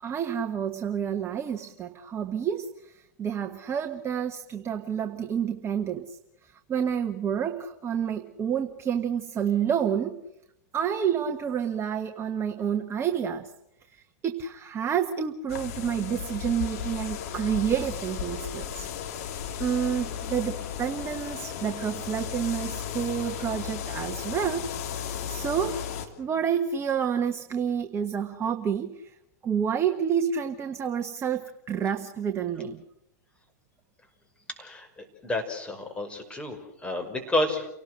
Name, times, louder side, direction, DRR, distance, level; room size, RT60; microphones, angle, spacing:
voice 1, 0.0-10.2 10.7-13.5 13.9-18.9 19.3-25.8 26.2-29.1 29.4-32.8, right 8 dB, 25° right, 6 dB, 1.4 m, -29 dB
sound 1, 15.5-26.1, left 8 dB, 60° left, 3.1 m, -35 dB
voice 2, 34.6-37.7, left 1 dB, 10° left, 4 dB, 5.4 m, -30 dB
29.5 x 18.5 x 6.5 m, 0.80 s
hypercardioid pair, 100°, 9 cm